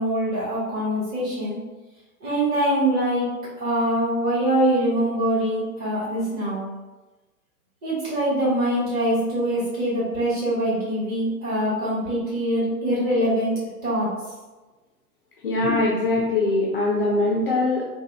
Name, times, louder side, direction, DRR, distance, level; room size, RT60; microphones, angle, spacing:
voice 1, 0.0-1.6 2.2-3.3 3.6-6.6 7.8-13.5 13.8-14.1, right 1 dB, 20° right, -8 dB, 1.4 m, -23 dB
voice 2, 15.4-17.9, left 2 dB, 40° left, -3 dB, 0.5 m, -22 dB
3.5 x 2.3 x 3.2 m, 1.2 s
figure-of-eight pair, 115°, 46 cm